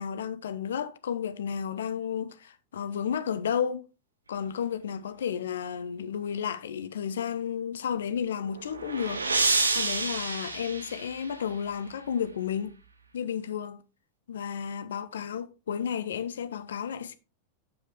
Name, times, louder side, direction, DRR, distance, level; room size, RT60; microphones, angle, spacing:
voice 1, 0.0-3.8 4.3-12.8 13.1-13.8 14.3-17.2, left 8 dB, 65° left, 0.6 m, -32 dB
sound 1, 8.2-11.6, right 3 dB, 80° right, 0.9 m, -29 dB
8.8 x 5.5 x 3.5 m
figure-of-eight pair, 90°, 0 cm